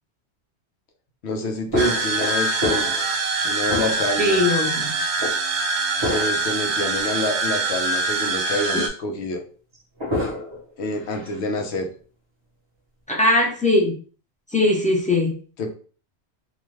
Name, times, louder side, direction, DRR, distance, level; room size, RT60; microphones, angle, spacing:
voice 1, 1.2-2.9 3.4-4.4 6.1-9.4 10.8-11.9 15.6-15.7, left 1 dB, 85° left, 4 dB, 0.9 m, -27 dB
sound 1, 1.7-3.2 3.6-4.3 5.2-5.4 6.0-6.5 7.0-7.1 9.7-10.7 11.0-11.4, left 1 dB, 30° right, 0.7 m, -28 dB
sound 2, 1.7-8.9, right 3 dB, 85° right, 0.9 m, -24 dB
voice 2, 4.2-5.0 13.1-14.0 14.5-15.4, left 2 dB, 10° left, -2 dB, 0.5 m, -20 dB
2.6 x 2.2 x 3.1 m, 0.40 s
omnidirectional pair, 1.1 m